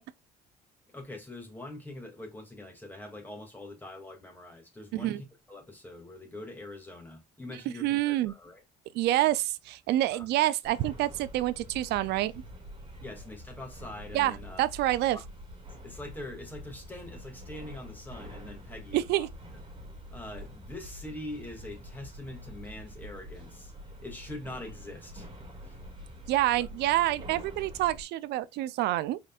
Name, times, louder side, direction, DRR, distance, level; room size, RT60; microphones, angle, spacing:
voice 1, 0.9-8.6 10.1-10.3 13.0-14.6 15.1-15.2 15.8-19.3 20.1-23.7 24.0-25.3 25.6-25.8 26.6-26.7, left 1 dB, 10° left, 2.3 m, -43 dB
voice 2, 7.8-8.3 8.9-12.4 14.1-15.2 18.9-19.3 26.3-29.2, right 15 dB, 80° right, 0.5 m, -27 dB
sound 1, 10.6-28.0, equal, 30° right, 2.4 m, -46 dB
5.0 x 4.3 x 2.4 m
cardioid pair, 110°, 17 cm